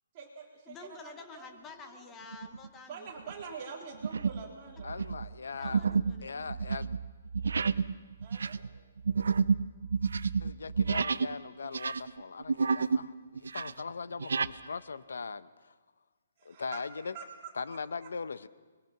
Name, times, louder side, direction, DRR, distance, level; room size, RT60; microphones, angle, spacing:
voice 1, 0.1-2.1 2.8-5.1 8.2-8.7 16.4-17.5 18.0-18.1, right 5 dB, 25° right, -3 dB, 3.6 m, -46 dB
voice 2, 0.7-3.1 3.6-3.7 5.6-6.6, left 5 dB, 10° left, 7 dB, 1.0 m, -50 dB
sound 1, 2.3-2.7 3.2-3.4 4.0-4.5 4.8-11.4 11.6-13.1 13.4-14.6, right 5 dB, 85° right, 0.7 m, -30 dB
voice 3, 4.8-5.8 6.2-7.0 10.4-15.7 16.4-17.1 17.5-18.5, left 5 dB, 90° left, 15 dB, 0.9 m, -40 dB
24.0 x 21.5 x 6.0 m, 1.4 s
hypercardioid pair, 175°, 0 cm